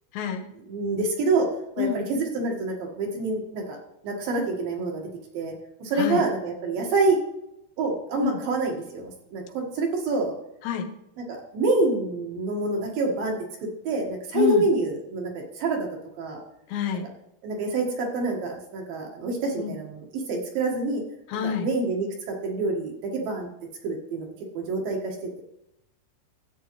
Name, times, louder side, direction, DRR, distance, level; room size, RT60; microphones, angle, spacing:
voice 1, 0.1-0.4 1.8-2.1 6.0-6.2 8.2-8.4 10.6-10.9 14.3-14.6 16.7-17.1 19.6-19.7 21.3-21.7, left 9 dB, 80° left, 4 dB, 3.2 m, -27 dB
voice 2, 0.7-1.5 1.8-3.8 4.0-5.1 5.3-5.5 5.8-7.2 7.8-10.3 11.2-13.4 13.8-15.9 16.2-16.4 17.4-21.0 21.6-23.5 23.8-24.3 24.5-25.4, right 3 dB, 60° right, 0 dB, 3.1 m, -27 dB
13.0 x 8.7 x 3.1 m, 0.82 s
omnidirectional pair, 5.0 m